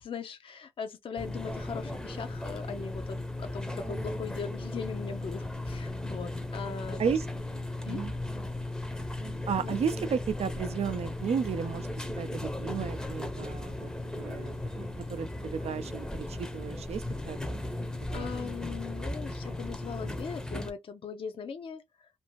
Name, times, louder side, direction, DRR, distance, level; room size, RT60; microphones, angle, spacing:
voice 1, 0.0-7.0 7.8-8.0 9.6-9.7 18.1-22.1, left 6 dB, 50° left, 0.5 m, -40 dB
sound 1, 1.2-20.7, left 1 dB, 5° left, 0.6 m, -36 dB
voice 2, 9.5-13.9 14.2-17.6 18.1-18.3, right 7 dB, 65° right, 0.4 m, -33 dB
2.6 x 2.5 x 3.0 m
cardioid pair, 95°, 12 cm